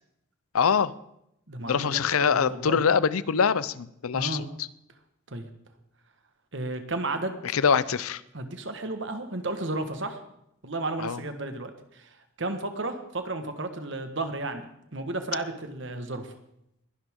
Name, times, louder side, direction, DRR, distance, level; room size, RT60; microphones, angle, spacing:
voice 1, 0.5-0.9 1.7-4.5 7.5-8.2 11.0-11.2, left 6 dB, 85° left, 18 dB, 0.6 m, -24 dB
voice 2, 1.5-2.8 4.1-4.5 5.3-5.5 6.5-7.4 8.3-10.2 10.6-12.1 12.4-16.3, right 2 dB, 60° right, 7 dB, 1.5 m, -33 dB
21.5 x 11.0 x 3.7 m, 0.80 s
head